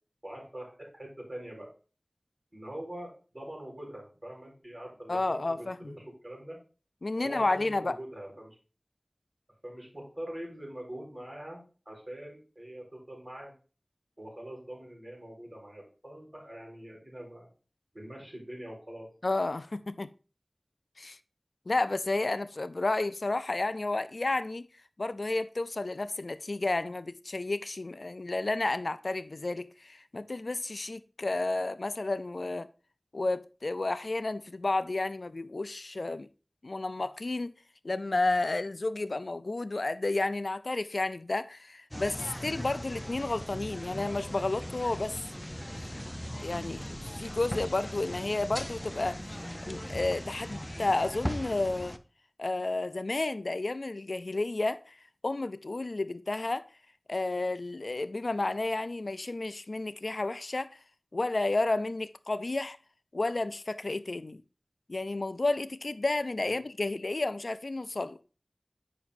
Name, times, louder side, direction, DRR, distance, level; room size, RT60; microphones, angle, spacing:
voice 1, 0.2-1.7 2.5-6.6 7.1-8.6 9.6-13.5 14.2-17.5 17.9-19.1 66.4-66.6, right 1 dB, 35° right, 4.3 m, -43 dB
voice 2, 5.1-6.0 7.0-8.0 19.2-20.1 21.0-21.2 21.7-24.7 25.0-32.7 33.1-36.3 36.6-37.5 37.8-45.2 46.4-52.0 52.4-55.0 55.2-56.7 57.1-60.7 61.1-62.8 63.1-64.4 64.9-68.2, left 2 dB, 85° left, 0.3 m, -31 dB
sound 1, 41.9-52.0, equal, 10° left, 0.5 m, -39 dB
9.1 x 5.9 x 2.5 m
wide cardioid pair, 45°, 0 cm